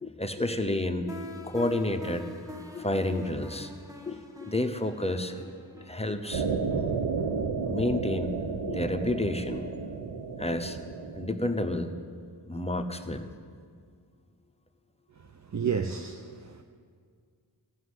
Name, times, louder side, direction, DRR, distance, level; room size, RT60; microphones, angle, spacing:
voice 1, 0.0-2.3 2.7-3.7 4.0-6.5 7.4-9.9 10.4-10.8 11.1-11.9 12.5-13.3, left 1 dB, 15° left, 0.8 m, -30 dB
sound 1, 1.1-7.8, left 1 dB, 10° right, 1.4 m, -46 dB
sound 2, 6.3-11.3, right 5 dB, 75° right, 1.0 m, -32 dB
voice 2, 15.2-16.6, right 6 dB, 40° right, 0.6 m, -32 dB
13.5 x 6.3 x 9.6 m
wide cardioid pair, 60°, 43 cm